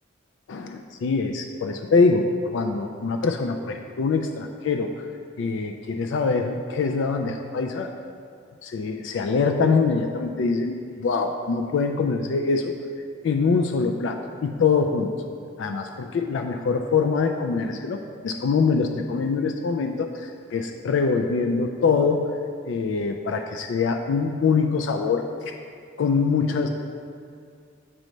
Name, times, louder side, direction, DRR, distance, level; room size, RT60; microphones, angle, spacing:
voice 1, 0.5-5.1 5.4-7.9 8.6-12.7 13.2-15.1 15.6-22.3 22.7-25.3 26.0-26.7, left 4 dB, 65° left, 4 dB, 0.3 m, -24 dB
7.5 x 3.1 x 5.2 m, 2.3 s
head